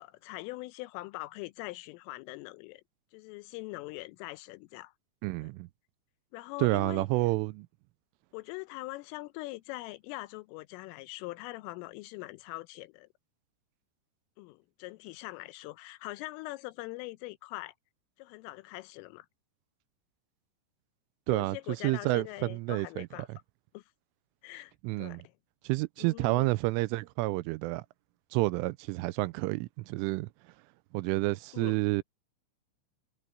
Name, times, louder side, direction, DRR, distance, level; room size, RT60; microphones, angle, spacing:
voice 1, 0.0-2.8 3.1-4.9 5.4-5.5 6.3-7.1 8.3-13.1 14.4-17.7 18.2-19.3 21.3-23.3 23.7-23.8 24.4-25.3 26.0-26.5 31.5-31.8, left 21 dB, 85° left, 3.4 m, -42 dB
voice 2, 5.2-5.7 6.6-7.7 21.3-21.6 21.8-23.4 24.8-25.2 25.6-27.8 28.3-30.3 30.9-32.0, right 21 dB, 85° right, 3.1 m, -29 dB
omnidirectional pair, 5.7 m